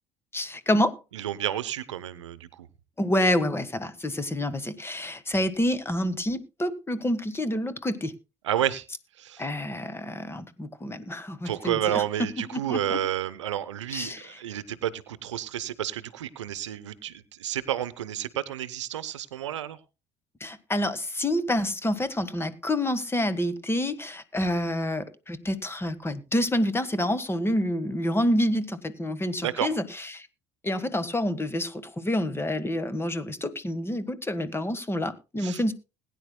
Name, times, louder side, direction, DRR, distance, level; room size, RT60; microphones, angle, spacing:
voice 1, 0.3-1.0 3.0-8.1 9.4-13.0 13.9-14.4 20.4-30.3 30.6-35.7, left 1 dB, 15° left, 13 dB, 1.5 m, -28 dB
voice 2, 1.1-2.7 8.4-8.9 9.2-9.5 11.4-19.8 29.4-29.7 35.4-35.7, right 11 dB, 85° right, 15 dB, 0.8 m, -30 dB
21.0 x 10.0 x 2.2 m, 0.28 s
hypercardioid pair, 65°, 15 cm